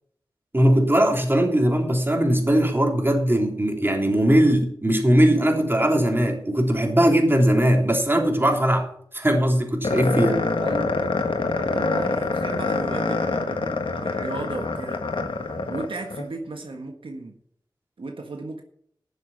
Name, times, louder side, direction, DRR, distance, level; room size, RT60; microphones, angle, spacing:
voice 1, 0.5-8.9 9.1-10.4, right 1 dB, 25° right, 1 dB, 3.3 m, -20 dB
sound 1, 9.8-16.3, left 3 dB, 80° left, 1.4 m, -25 dB
voice 2, 10.6-11.2 11.6-15.0 15.7-17.4 18.0-18.6, right 3 dB, 85° right, 3 dB, 1.5 m, -35 dB
11.5 x 7.3 x 7.3 m, 0.65 s
cardioid pair, 45°, 9 cm